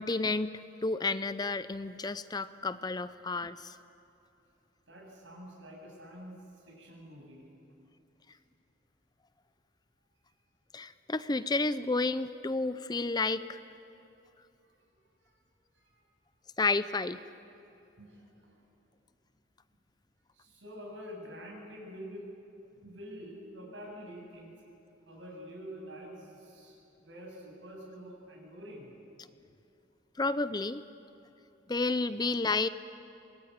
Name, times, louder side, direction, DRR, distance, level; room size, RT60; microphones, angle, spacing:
voice 1, 0.0-3.8 10.7-13.6 16.6-17.2 30.2-30.8 31.7-32.7, left 3 dB, 20° left, 14 dB, 0.5 m, -31 dB
voice 2, 4.9-6.3 6.6-7.5 8.3-8.4 15.2-15.3 15.7-15.9 18.0-18.6 20.3-22.2 22.8-24.5 25.1-28.9, equal, 75° right, -1 dB, 7.8 m, -47 dB
24.0 x 21.0 x 9.4 m, 2.9 s
head